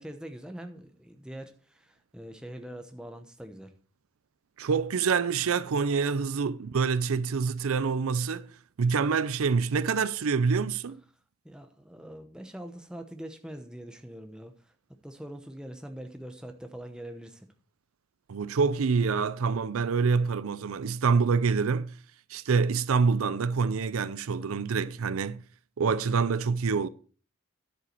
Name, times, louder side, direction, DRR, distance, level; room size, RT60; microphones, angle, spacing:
voice 1, 0.0-3.7 11.4-14.7 15.0-17.5, right 1 dB, 5° right, 0.9 m, -43 dB
voice 2, 4.6-8.5 8.8-11.0 18.3-21.9 22.3-25.4 25.8-26.9, right 5 dB, 75° right, 0.5 m, -26 dB
10.0 x 8.1 x 4.4 m
head